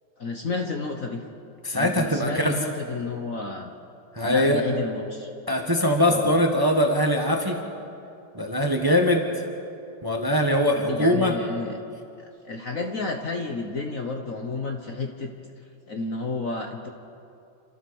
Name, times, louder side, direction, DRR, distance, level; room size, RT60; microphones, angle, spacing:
voice 1, 0.2-1.2 1.7-3.7 4.2-5.3 6.1-6.3 10.5-11.8 12.4-15.3 15.9-16.9, left 3 dB, 45° left, 3 dB, 1.3 m, -31 dB
voice 2, 1.6-2.6 4.1-4.6 5.5-7.6 8.3-9.4 10.0-11.3, left 1 dB, 10° right, 3 dB, 1.4 m, -22 dB
29.0 x 14.0 x 7.1 m, 2.6 s
omnidirectional pair, 2.2 m